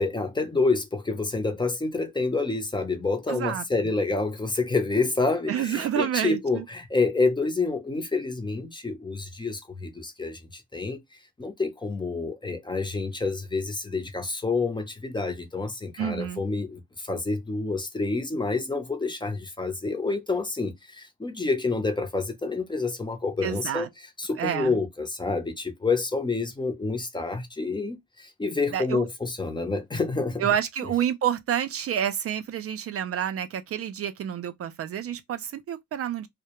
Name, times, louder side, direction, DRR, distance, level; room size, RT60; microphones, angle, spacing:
voice 1, 0.0-11.0 11.4-23.9 24.2-30.5, left 3 dB, 15° left, 0.6 m, -28 dB
voice 2, 3.3-3.6 5.5-6.6 16.0-16.4 23.4-23.9 24.4-24.8 28.7-29.1 30.4-36.3, right 9 dB, 50° right, 0.4 m, -29 dB
2.2 x 2.1 x 2.9 m
cardioid pair, 90°, 30 cm